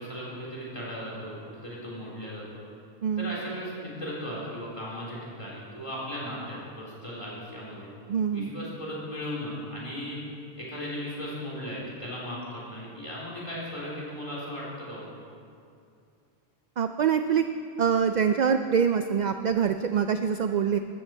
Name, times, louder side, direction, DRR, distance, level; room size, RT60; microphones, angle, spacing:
voice 1, 0.0-2.6 3.2-7.9 8.3-10.2 10.6-15.0, equal, 30° left, -6 dB, 3.9 m, -37 dB
voice 2, 3.0-3.4 8.1-8.5 16.8-17.4 17.8-20.8, right 7 dB, 55° right, 8 dB, 0.5 m, -24 dB
14.0 x 13.5 x 4.5 m, 2.4 s
omnidirectional pair, 1.1 m